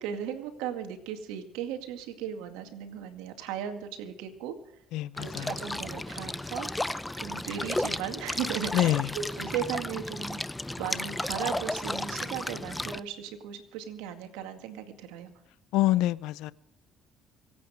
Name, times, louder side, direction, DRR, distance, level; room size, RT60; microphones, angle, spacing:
voice 1, 0.0-4.5 5.2-6.7 7.2-10.4 10.8-15.3, right 9 dB, 90° right, 2.1 m, -36 dB
voice 2, 4.9-5.5 8.7-9.1 15.7-16.5, left 15 dB, 80° left, 0.5 m, -26 dB
sound 1, 5.2-13.0, left 1 dB, 10° left, 0.7 m, -34 dB
24.5 x 8.8 x 5.0 m
supercardioid pair, 80°, 0 cm